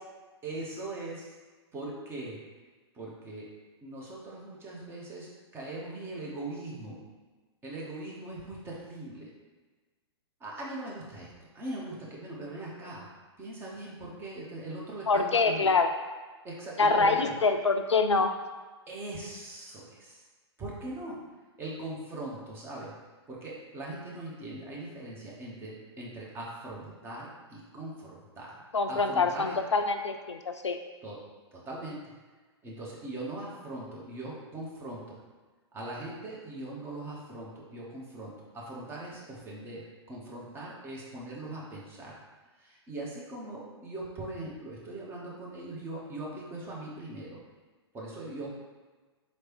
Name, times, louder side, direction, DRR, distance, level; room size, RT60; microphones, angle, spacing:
voice 1, 0.4-1.3 1.7-2.4 2.9-3.5 3.8-7.0 7.6-9.3 10.4-13.1 13.4-15.7 16.4-17.3 18.9-20.2 20.6-21.2 21.6-22.9 23.3-28.6 28.9-29.6 31.0-31.2 31.5-32.1 32.6-35.2 35.7-42.2 42.6-47.4 47.9-48.5, right 2 dB, 15° right, -4 dB, 0.9 m, -40 dB
voice 2, 15.1-15.9 16.8-18.3 28.7-30.8, left 4 dB, 80° left, 7 dB, 0.4 m, -25 dB
4.1 x 3.2 x 3.0 m, 1.3 s
figure-of-eight pair, 110°, 15 cm